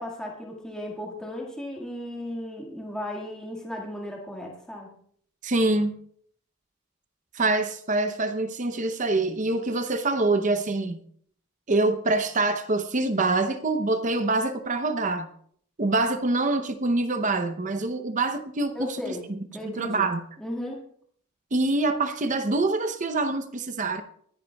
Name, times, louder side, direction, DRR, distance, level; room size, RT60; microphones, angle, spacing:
voice 1, 0.0-4.9 18.7-19.2 19.5-20.1 20.4-20.8, left 1 dB, 5° left, 1.7 m, -35 dB
voice 2, 5.4-5.9 7.3-11.0 11.7-15.3 15.8-19.0 19.6-20.2 21.5-24.0, right 2 dB, 35° right, 0.7 m, -25 dB
24.0 x 10.5 x 2.3 m
head